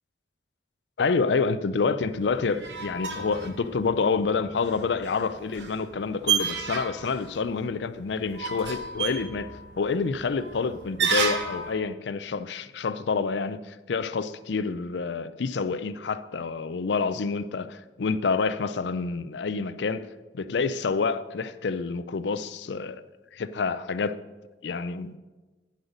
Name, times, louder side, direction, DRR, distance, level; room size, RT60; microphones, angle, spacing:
voice 1, 1.0-9.5 9.8-20.1 20.3-23.0 23.3-24.2 24.6-25.2, left 4 dB, 75° left, 0.5 m, -28 dB
sound 1, 2.0-11.7, right 5 dB, 75° right, 1.1 m, -32 dB
9.5 x 8.0 x 5.1 m
head